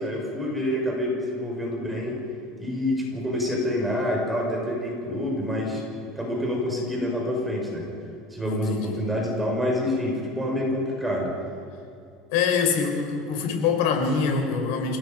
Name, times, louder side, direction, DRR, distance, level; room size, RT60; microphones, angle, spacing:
voice 1, 0.0-2.2 2.6-5.8 6.2-7.9 8.3-11.3, left 1 dB, 10° right, -1 dB, 5.5 m, -27 dB
voice 2, 8.4-9.0 12.3-15.0, left 5 dB, 70° left, 3 dB, 4.7 m, -24 dB
28.5 x 18.0 x 5.2 m, 2.5 s
supercardioid pair, 130°, 0 cm